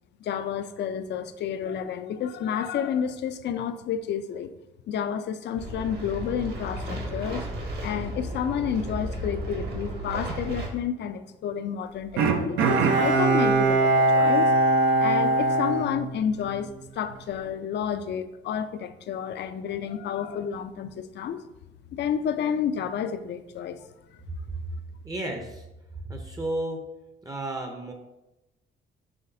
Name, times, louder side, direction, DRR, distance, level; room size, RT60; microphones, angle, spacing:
voice 1, 0.2-4.5 4.9-7.5 7.8-14.5 15.0-21.4 21.9-23.9, left 8 dB, 60° left, 10 dB, 0.4 m, -30 dB
sound 1, 5.6-10.7, right 1 dB, 55° right, 1.1 m, -34 dB
Bowed string instrument, 12.2-16.7 17.1-17.2, right 2 dB, 85° right, 0.5 m, -22 dB
voice 2, 25.0-25.6 26.1-26.8 27.2-27.9, right 1 dB, 20° right, 2 dB, 0.5 m, -32 dB
5.7 x 3.2 x 2.6 m, 0.97 s
cardioid pair, 90°, 20 cm